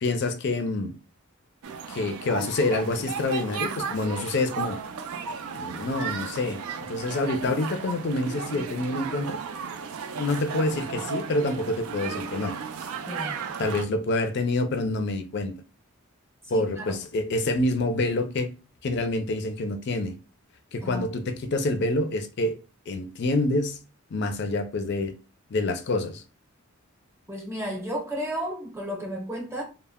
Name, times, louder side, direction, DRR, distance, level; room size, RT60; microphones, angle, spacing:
voice 1, 0.0-0.9 1.9-4.8 5.5-9.4 10.2-12.5 13.6-15.5 16.5-18.5 18.8-20.1 20.7-22.6 22.9-23.8 24.1-25.1 25.5-26.2, left 2 dB, 50° left, 0.4 m, -27 dB
sound 1, 1.6-13.9, right 6 dB, 80° right, 0.4 m, -35 dB
voice 2, 13.1-13.4 16.5-16.9 20.8-21.1 27.3-29.6, equal, 10° right, 0.7 m, -33 dB
2.1 x 2.1 x 3.4 m
head